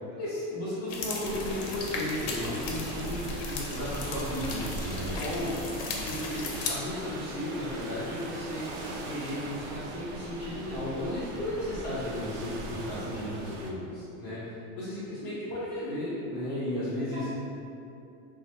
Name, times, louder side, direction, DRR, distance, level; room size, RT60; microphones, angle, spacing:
voice 1, 0.2-5.6 6.1-6.4 6.7-8.7 9.0-17.3, left 1 dB, 30° left, -10 dB, 0.4 m, -34 dB
sound 1, 0.9-6.7, left 4 dB, 90° left, 0.6 m, -37 dB
sound 2, 1.2-13.7, right 2 dB, 85° right, 0.5 m, -39 dB
voice 2, 5.7-6.1 12.8-13.3 14.9-15.2 17.0-17.3, right 1 dB, 30° right, -9 dB, 0.7 m, -46 dB
3.0 x 2.1 x 2.7 m, 2.7 s
cardioid pair, 180°, 32 cm